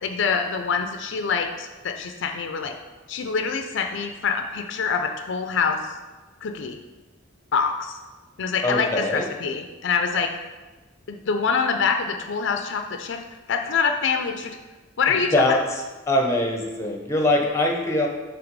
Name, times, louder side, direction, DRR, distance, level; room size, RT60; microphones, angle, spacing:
voice 1, 0.0-2.7 3.1-5.9 6.4-6.8 7.5-8.0 8.4-10.3 11.1-13.2 13.5-14.6 15.0-15.6, left 5 dB, 65° left, 6 dB, 0.4 m, -25 dB
voice 2, 8.6-9.2 15.3-15.6 16.1-18.1, left 1 dB, 15° left, 2 dB, 0.7 m, -22 dB
5.9 x 3.4 x 5.2 m, 1.2 s
head